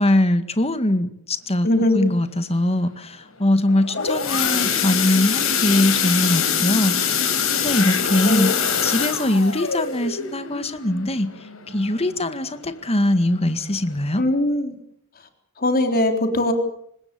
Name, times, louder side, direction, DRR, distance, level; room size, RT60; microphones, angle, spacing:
voice 1, 0.0-1.7 1.9-8.5 8.8-11.3 11.7-14.2, left 1 dB, 30° left, 10 dB, 1.9 m, -22 dB
voice 2, 1.6-2.0 3.9-4.0 4.4-4.7 8.2-8.5 14.2-14.8 15.6-16.5, left 1 dB, 45° left, 6 dB, 3.8 m, -21 dB
sound 1, 3.7-12.3 12.8-13.0 13.3-13.4 13.9-14.0, left 7 dB, 80° left, 4.9 m, -24 dB
26.0 x 20.0 x 7.0 m, 0.72 s
head